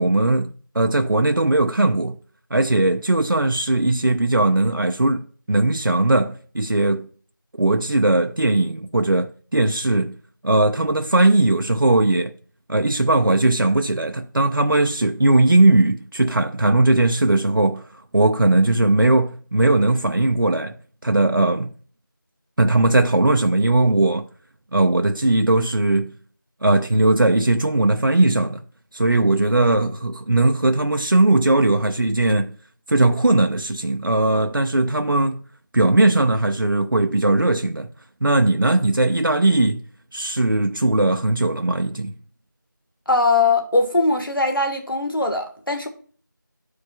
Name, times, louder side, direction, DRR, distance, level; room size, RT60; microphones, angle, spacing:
voice 1, 0.0-2.2 2.5-7.1 7.6-10.2 10.4-12.3 12.7-17.9 18.1-20.8 21.0-21.7 22.6-24.3 24.7-26.2 26.6-28.6 28.9-32.6 32.9-35.4 35.7-37.9 38.2-39.8 40.1-42.2, right 2 dB, 80° right, 0.6 m, -19 dB
voice 2, 43.1-45.9, left 3 dB, 90° left, 1.4 m, -20 dB
12.5 x 4.8 x 2.3 m
figure-of-eight pair, 175°, 11 cm